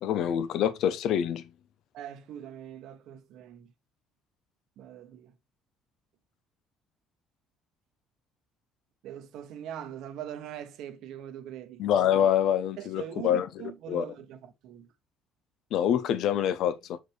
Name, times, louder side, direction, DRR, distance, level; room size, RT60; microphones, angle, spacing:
voice 1, 0.0-1.5 11.8-13.5 13.9-14.0 15.7-17.0, left 9 dB, 65° left, 0.7 m, -26 dB
voice 2, 1.9-3.7 4.8-5.3 9.0-11.9 12.8-14.9, right 10 dB, 70° right, 0.9 m, -42 dB
6.4 x 4.7 x 3.2 m
supercardioid pair, 80°, 0 cm